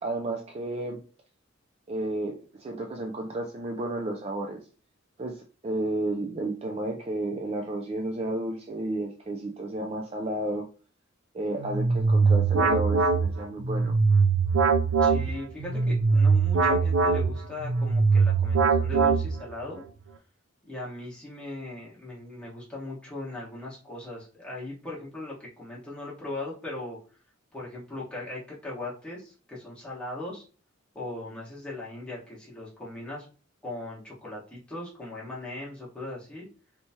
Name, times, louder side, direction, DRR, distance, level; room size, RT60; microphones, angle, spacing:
voice 1, 0.0-1.0 1.9-4.6 5.2-10.7 11.3-13.9, right 1 dB, 30° right, 2 dB, 0.4 m, -32 dB
sound 1, 11.6-19.6, right 4 dB, 90° right, 0.5 m, -22 dB
voice 2, 15.0-19.8 20.7-27.0 27.5-30.4 30.9-33.2 33.6-36.5, left 2 dB, 5° left, -6 dB, 1.3 m, -39 dB
3.3 x 3.0 x 2.8 m, 0.37 s
head